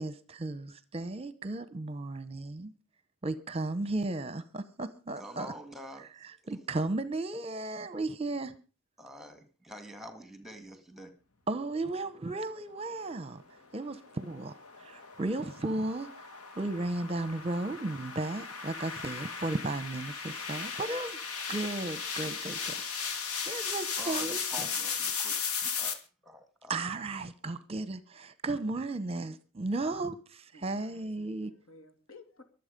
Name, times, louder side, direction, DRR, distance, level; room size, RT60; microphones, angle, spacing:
voice 1, 0.0-2.7 3.2-5.5 6.5-8.5 11.5-13.4 13.7-16.1 16.6-21.2 21.5-22.8 23.4-24.7 26.7-31.5, right 2 dB, 25° right, 0.8 m, -35 dB
voice 2, 5.2-6.1 9.0-11.1 24.0-25.4 25.8-26.8, equal, ahead, 2.0 m, -46 dB
sound 1, 13.9-25.9, left 6 dB, 90° left, 2.4 m, -36 dB
voice 3, 30.5-32.4, left 2 dB, 70° left, 2.5 m, -55 dB
23.5 x 8.0 x 5.2 m
head